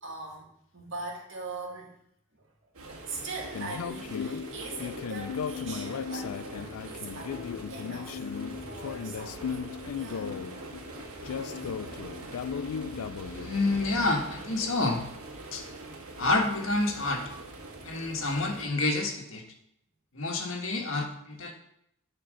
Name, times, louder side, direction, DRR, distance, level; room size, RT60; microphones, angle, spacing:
voice 1, 0.0-1.9 2.3-2.5 2.8-10.3 11.3-11.7 17.6-17.8, right 3 dB, 60° right, -1 dB, 2.4 m, -42 dB
sound 1, 2.7-18.6, right 2 dB, 85° right, 1.8 m, -44 dB
sound 2, 3.5-13.5, left 7 dB, 85° left, 0.4 m, -36 dB
voice 2, 13.3-15.0 15.5-15.6 16.2-17.2 17.8-19.4 20.1-21.5, left 2 dB, 65° left, 2 dB, 1.6 m, -28 dB
11.5 x 4.4 x 6.3 m, 0.75 s
head